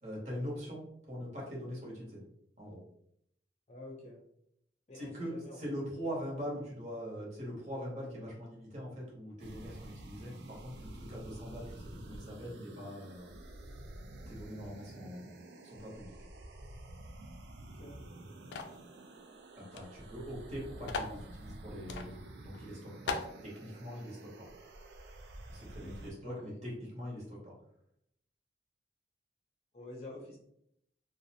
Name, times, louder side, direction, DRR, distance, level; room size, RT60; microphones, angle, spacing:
voice 1, 0.0-2.2 2.6-2.8 4.9-13.4 14.3-16.2 19.6-22.1 22.4-24.5 25.5-27.5, equal, 40° right, -4 dB, 0.9 m, -42 dB
voice 2, 3.7-4.2 4.9-5.6 17.7-18.0 25.8-26.5 29.7-30.4, left 1 dB, 35° left, -3 dB, 0.6 m, -48 dB
sound 1, 9.4-26.1, right 1 dB, 70° right, 0.3 m, -50 dB
sound 2, 18.5-18.8 19.7-19.8 20.1-20.2 20.9-21.2 21.9-22.1 22.5-22.6 23.1-23.3, left 4 dB, 80° left, 0.3 m, -37 dB
2.5 x 2.1 x 2.7 m, 0.74 s
head